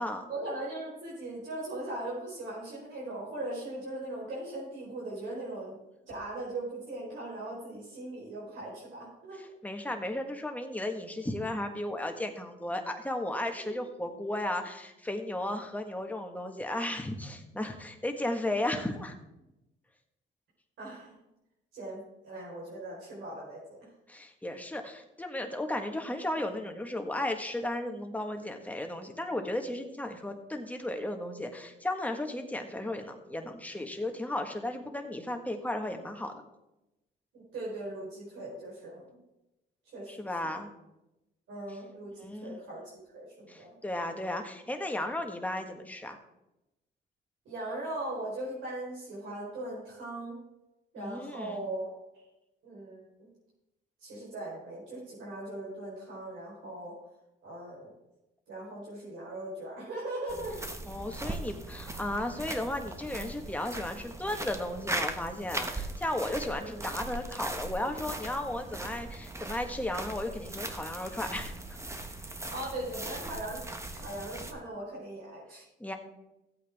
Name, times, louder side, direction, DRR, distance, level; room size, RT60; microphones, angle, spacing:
voice 1, 0.3-5.8 6.1-9.4 13.6-13.7 20.8-21.1 21.7-23.8 25.8-25.9 37.3-39.0 39.9-40.5 41.5-42.8 43.1-43.8 47.4-50.4 50.9-52.2 52.6-53.3 54.0-56.9 57.4-57.9 58.5-60.6 66.6-66.8 72.5-73.6 73.9-75.6, right 1 dB, 75° right, -6 dB, 4.6 m, -39 dB
voice 2, 9.4-19.2 24.1-36.4 40.1-40.7 42.2-42.6 43.5-46.2 51.0-51.6 60.9-71.6 75.8-76.0, left 1 dB, 5° left, 4 dB, 1.6 m, -35 dB
sound 1, 60.3-74.5, right 2 dB, 15° right, 1.2 m, -39 dB
15.0 x 8.4 x 3.6 m, 0.93 s
cardioid pair, 90°, 20 cm